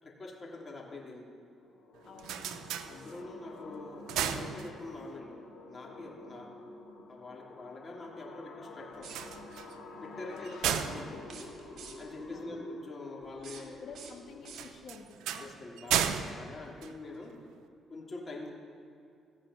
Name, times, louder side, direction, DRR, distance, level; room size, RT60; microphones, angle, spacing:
voice 1, 0.0-1.3 2.9-5.4 5.7-6.5 7.1-9.1 10.0-11.3 12.0-13.8 15.4-17.4 17.9-18.5, left 2 dB, 35° left, -2 dB, 2.9 m, -44 dB
sound 1, 1.6-14.7, left 3 dB, 75° left, 2.3 m, -49 dB
sound 2, 1.9-3.5 3.9-5.2 9.0-12.4 14.5-17.6, right 9 dB, 90° right, 0.6 m, -35 dB
voice 2, 2.0-2.7 10.3-10.8 12.3-12.6 13.6-15.5, left 4 dB, 55° left, 1 dB, 2.0 m, -50 dB
sound 3, 8.9-9.6 11.2-12.2 13.2-15.1, right 6 dB, 70° right, 1.6 m, -52 dB
15.0 x 5.7 x 8.9 m, 2.5 s
cardioid pair, 90°, 0 cm